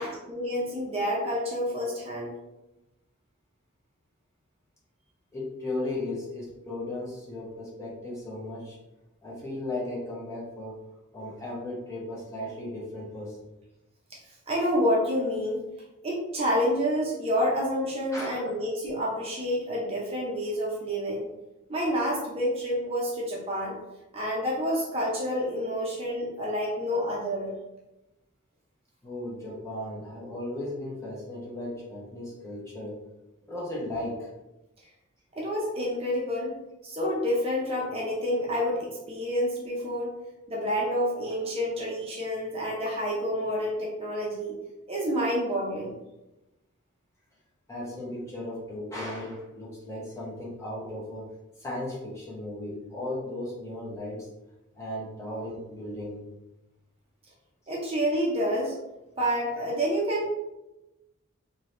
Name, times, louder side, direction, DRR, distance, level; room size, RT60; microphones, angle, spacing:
voice 1, 0.3-2.3 14.5-15.6 16.0-21.3 21.7-23.8 24.1-27.5 35.3-36.5 36.8-40.1 40.5-44.6 44.9-46.0 57.7-58.8 59.2-60.3, equal, 30° right, -3 dB, 0.5 m, -28 dB
voice 2, 5.3-8.8 9.2-10.8 11.1-13.4 18.1-18.6 29.0-33.0 33.5-34.3 47.7-51.3 51.6-54.3 54.8-56.2, left 1 dB, 15° left, -6 dB, 0.8 m, -36 dB
2.7 x 2.7 x 3.1 m, 0.98 s
head